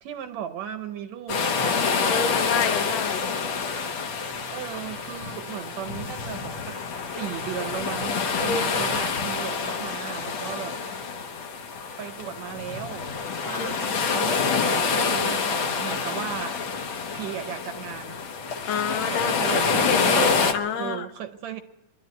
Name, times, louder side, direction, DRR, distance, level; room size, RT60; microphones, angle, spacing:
voice 1, 0.0-1.5 4.3-6.8 7.1-10.8 12.0-13.1 13.4-16.6 17.1-18.2 19.1-20.3 20.7-21.6, right 9 dB, 70° right, 9 dB, 1.8 m, -36 dB
sound 1, 1.3-20.5, left 5 dB, 60° left, 1.4 m, -27 dB
voice 2, 2.1-3.2 8.5-8.6 13.6-13.7 18.6-19.6 19.9-21.1, left 6 dB, 85° left, 8 dB, 2.6 m, -28 dB
23.5 x 12.0 x 9.5 m, 1.0 s
omnidirectional pair, 3.8 m